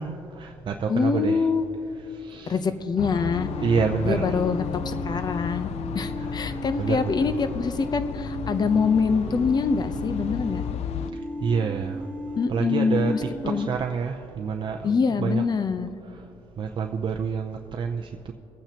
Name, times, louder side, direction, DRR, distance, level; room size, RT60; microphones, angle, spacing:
voice 1, 0.0-1.4 2.1-2.6 3.6-4.4 6.2-7.3 11.4-12.1 12.5-15.4 16.1-16.2 16.6-18.3, right 6 dB, 45° right, 3 dB, 0.6 m, -28 dB
voice 2, 0.9-1.7 2.5-3.5 4.0-5.7 5.9-10.6 12.4-13.7 14.8-15.9, left 5 dB, 40° left, 11 dB, 0.7 m, -25 dB
sound 1, 3.0-11.1, left 10 dB, 65° left, 0.4 m, -34 dB
sound 2, 3.3-13.7, equal, 10° right, 1.3 m, -36 dB
22.5 x 8.9 x 2.9 m, 2.9 s
cardioid pair, 105°, 11 cm